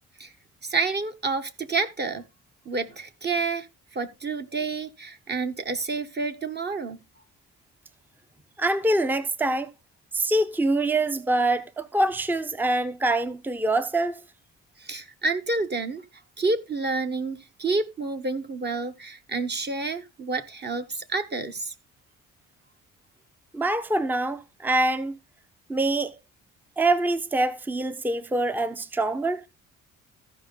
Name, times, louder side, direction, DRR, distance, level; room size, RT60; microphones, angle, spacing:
voice 1, 0.6-2.2 2.6-3.7 3.9-7.0 14.8-16.0 16.4-21.7, right 3 dB, 35° right, 1.3 m, -29 dB
voice 2, 8.6-9.7 10.1-14.2 23.5-25.2 25.7-26.2 26.8-29.4, right 2 dB, 5° right, 0.7 m, -25 dB
14.5 x 5.3 x 4.0 m
cardioid pair, 90°, 30 cm